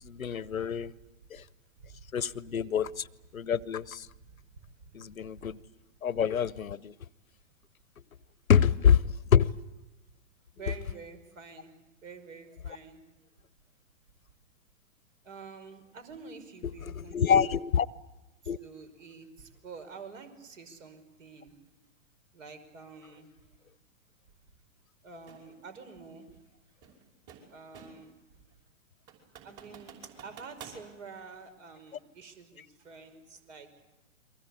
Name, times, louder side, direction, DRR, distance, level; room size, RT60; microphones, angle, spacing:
voice 1, 0.0-0.9 2.1-2.9 3.3-4.1 4.9-5.6 6.0-6.9 8.5-9.0 9.3-9.5 16.6-17.9 18.5-18.6, left 8 dB, 90° left, 1.0 m, -26 dB
voice 2, 10.5-11.7 12.0-13.0 15.2-17.6 18.4-21.6 22.3-23.3 25.0-26.3 27.5-28.2 29.4-33.7, right 5 dB, 65° right, 5.6 m, -48 dB
sound 1, 25.3-25.5 26.8-28.1 28.5-28.6 29.1-30.8, right 7 dB, 35° right, 5.8 m, -50 dB
29.5 x 23.5 x 8.5 m
hypercardioid pair, 125°, 40 cm